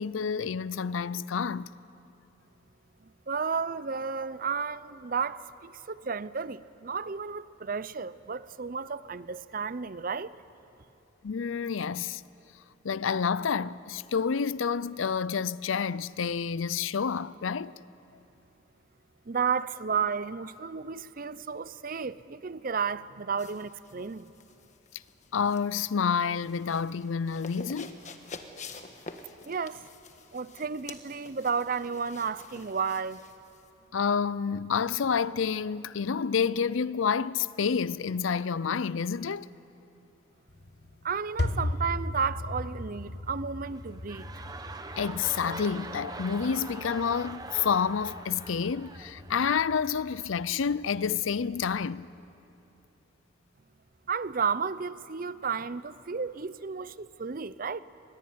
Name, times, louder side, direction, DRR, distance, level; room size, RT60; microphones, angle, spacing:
voice 1, 0.0-1.7 11.2-12.2 12.8-17.7 25.3-28.0 33.9-39.5 45.0-52.1, left 6 dB, 80° left, 0.5 m, -29 dB
voice 2, 3.0-10.3 19.3-24.3 29.4-29.9 30.3-33.2 41.0-44.3 54.1-57.8, right 5 dB, 45° right, 0.6 m, -32 dB
sound 1, 23.4-33.7, left 4 dB, 35° left, 1.4 m, -48 dB
sound 2, 40.5-51.9, left 1 dB, 55° left, 1.2 m, -39 dB
sound 3, 43.6-50.0 50.7-50.8, right 3 dB, 20° right, 1.0 m, -43 dB
23.0 x 22.0 x 9.6 m
head